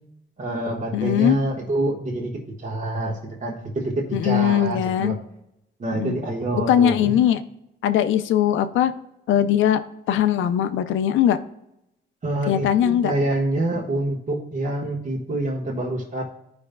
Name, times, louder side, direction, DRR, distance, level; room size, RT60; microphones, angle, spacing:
voice 1, 0.4-5.2 5.8-7.2 12.2-16.2, right 1 dB, 40° right, -2 dB, 1.4 m, -26 dB
voice 2, 0.9-1.4 4.1-5.2 5.9-6.2 6.7-7.4 7.8-8.9 9.3-9.8 10.1-11.4 12.5-13.1, left 10 dB, 80° left, 10 dB, 0.6 m, -20 dB
14.5 x 5.2 x 2.2 m, 0.86 s
cardioid pair, 90°, 20 cm